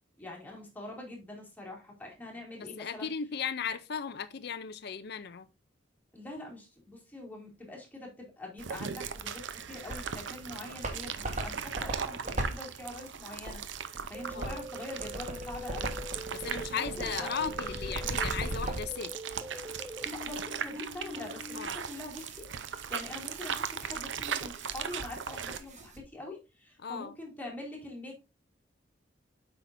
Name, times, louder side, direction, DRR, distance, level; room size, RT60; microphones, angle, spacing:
voice 1, 0.2-3.1 6.1-11.1 11.4-16.0 16.2-17.5 20.1-28.2, left 2 dB, 10° left, 2.5 m, -44 dB
voice 2, 2.6-5.5 14.3-14.6 16.3-19.1 21.5-21.7 26.8-27.1, left 6 dB, 60° left, 0.5 m, -36 dB
sound 1, 8.6-25.6, right 7 dB, 70° right, 0.7 m, -39 dB
sound 2, 9.6-10.2 10.6-19.0 19.5-19.6 21.2-26.0, right 1 dB, 40° right, 1.3 m, -40 dB
sound 3, 14.1-21.7, equal, 15° right, 0.5 m, -44 dB
8.3 x 5.7 x 2.6 m
head